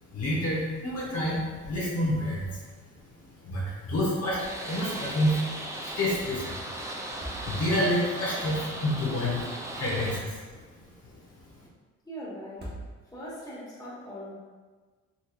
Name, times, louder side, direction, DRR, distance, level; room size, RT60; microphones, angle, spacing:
voice 1, 0.1-2.6 3.4-5.4 5.8-6.6 7.4-9.5 9.8-10.4, left 1 dB, 55° left, -6 dB, 1.1 m, -28 dB
sound 1, 4.4-10.2, right 1 dB, 10° right, 0.5 m, -37 dB
sound 2, 4.6-4.7 5.0-5.1 7.0-8.0 9.7-10.6 12.4-13.4, right 1 dB, 35° right, 1.1 m, -44 dB
voice 2, 12.0-12.7 13.1-14.3, equal, 10° left, -7 dB, 1.3 m, -40 dB
4.2 x 2.9 x 2.4 m, 1.4 s
cardioid pair, 90°, 30 cm